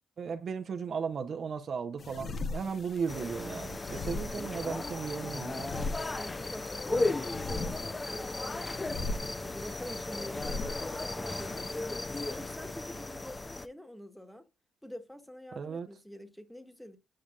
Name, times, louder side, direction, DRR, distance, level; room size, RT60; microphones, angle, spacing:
voice 1, 0.2-5.7 6.9-7.1 15.5-15.9, right 6 dB, 50° right, 0.7 m, -36 dB
sound 1, 2.0-11.8, left 3 dB, 45° left, 0.8 m, -41 dB
sound 2, 3.1-13.7, left 2 dB, 20° left, 0.5 m, -36 dB
voice 2, 6.1-8.6 9.3-14.5 14.8-17.0, equal, ahead, 1.2 m, -46 dB
8.7 x 5.1 x 2.4 m
cardioid pair, 90°, 0 cm